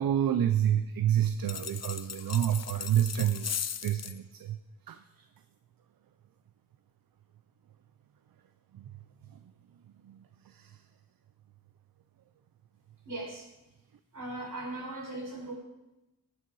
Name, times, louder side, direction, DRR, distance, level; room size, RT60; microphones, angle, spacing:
voice 1, 0.0-4.6 4.9-5.3 8.7-8.9 9.3-9.4 10.0-10.8, right 10 dB, 85° right, 9 dB, 0.6 m, -29 dB
sound 1, 1.5-4.2, left 8 dB, 50° left, 0.5 m, -38 dB
voice 2, 13.0-13.5 14.1-15.5, right 2 dB, 65° right, -1 dB, 4.5 m, -38 dB
15.5 x 8.8 x 4.7 m, 0.96 s
cardioid pair, 65°, 34 cm